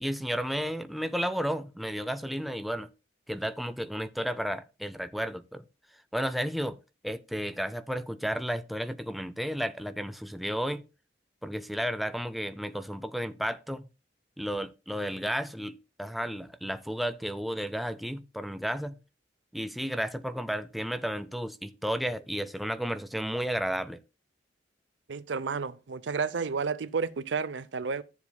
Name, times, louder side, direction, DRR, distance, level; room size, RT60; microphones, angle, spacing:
voice 1, 0.0-2.9 3.3-5.6 6.1-6.8 7.0-10.8 11.4-13.8 14.4-19.0 19.5-24.0, equal, ahead, 0.3 m, -33 dB
voice 2, 25.1-28.0, right 5 dB, 80° right, 0.6 m, -31 dB
14.0 x 7.1 x 2.2 m
head